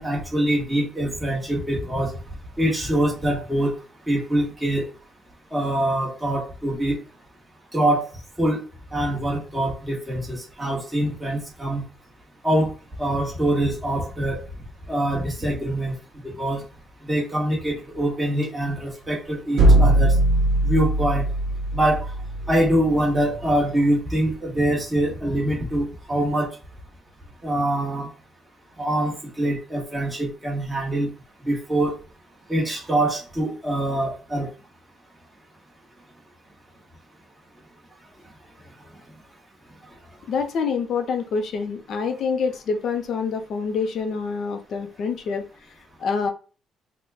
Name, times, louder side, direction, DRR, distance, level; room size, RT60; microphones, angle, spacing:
voice 1, 0.0-2.1 2.6-3.7 4.1-4.9 5.5-7.0 7.7-8.1 8.4-8.6 8.9-11.8 12.4-12.7 13.0-14.4 14.9-15.9 16.2-16.6 17.0-20.1 20.6-21.3 21.7-22.1 22.5-26.5 27.4-28.1 28.8-29.1 29.4-31.1 31.5-31.9 32.5-34.5, right 1 dB, 5° right, -3 dB, 1.2 m, -24 dB
sound 1, 19.6-23.4, right 1 dB, 50° right, 0.9 m, -20 dB
voice 2, 40.3-45.5 46.0-46.3, left 5 dB, 50° left, 6 dB, 0.6 m, -26 dB
3.8 x 2.2 x 3.4 m, 0.35 s
cardioid pair, 165°, 0 cm